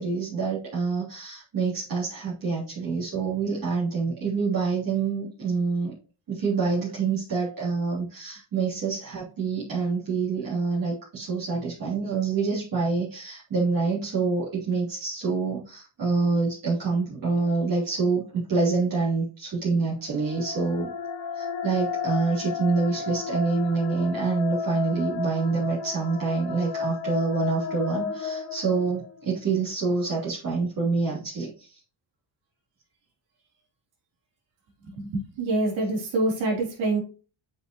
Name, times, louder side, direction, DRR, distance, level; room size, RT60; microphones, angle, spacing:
voice 1, 0.0-5.9 6.3-20.9 21.3-31.7, right 4 dB, 45° right, -8 dB, 3.4 m, -26 dB
sound 1, 20.0-29.3, left 5 dB, 75° left, 1.7 m, -33 dB
voice 2, 34.8-37.0, right 2 dB, 80° right, -1 dB, 3.5 m, -26 dB
8.1 x 5.4 x 3.0 m, 0.37 s
cardioid pair, 110°, 46 cm